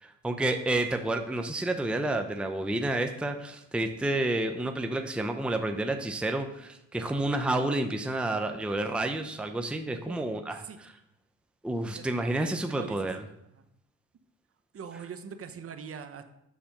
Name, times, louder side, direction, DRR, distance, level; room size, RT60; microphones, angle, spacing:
voice 1, 0.0-10.9 11.6-13.2, right 1 dB, 5° right, 5 dB, 0.6 m, -30 dB
voice 2, 12.6-13.0 13.5-13.6 14.7-16.2, right 7 dB, 50° right, 8 dB, 0.9 m, -42 dB
7.6 x 4.2 x 5.9 m, 0.82 s
cardioid pair, 90°, 30 cm